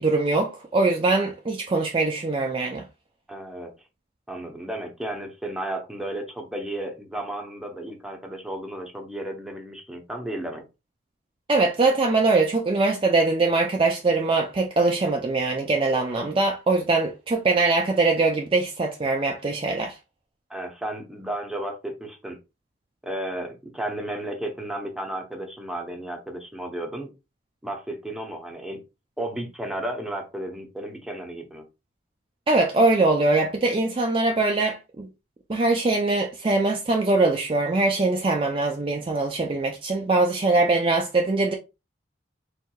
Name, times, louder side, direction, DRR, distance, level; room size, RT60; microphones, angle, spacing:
voice 1, 0.0-2.8 11.5-20.0 32.5-35.1 35.5-41.5, right 3 dB, 25° right, 0.4 m, -22 dB
voice 2, 3.3-3.7 4.3-10.6 20.5-22.4 23.0-27.1 27.6-28.8 29.2-31.6, right 1 dB, 5° right, 0.7 m, -33 dB
4.5 x 3.6 x 2.3 m
head